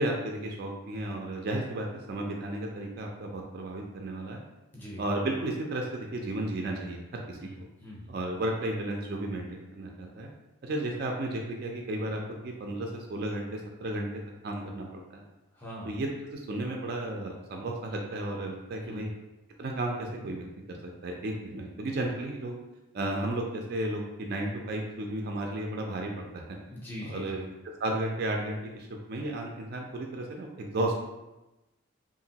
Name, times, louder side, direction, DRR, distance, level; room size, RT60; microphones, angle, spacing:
voice 1, 0.0-4.4 5.0-7.7 8.1-10.3 10.6-14.1 14.4-15.2 15.8-19.1 19.6-22.6 22.9-26.4 27.0-27.4 27.8-31.0, right 1 dB, 50° right, 1 dB, 0.4 m, -33 dB
voice 2, 7.4-8.1 15.5-16.0 18.8-19.1 26.6-27.4, equal, 10° left, -5 dB, 0.5 m, -42 dB
2.9 x 2.5 x 2.7 m, 1.0 s
head